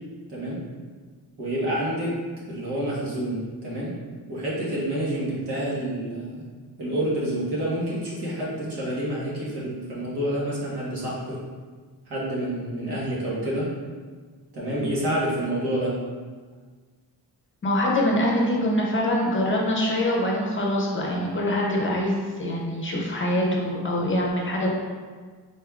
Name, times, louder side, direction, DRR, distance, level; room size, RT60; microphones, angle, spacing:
voice 1, 0.3-0.6 1.4-2.2 2.5-4.0 4.3-6.5 6.8-11.4 12.1-13.7 14.5-16.0, right 1 dB, 85° right, -6 dB, 1.3 m, -28 dB
voice 2, 17.6-24.7, left 1 dB, 30° left, -2 dB, 0.6 m, -24 dB
4.1 x 3.4 x 2.4 m, 1.5 s
wide cardioid pair, 140°, 39 cm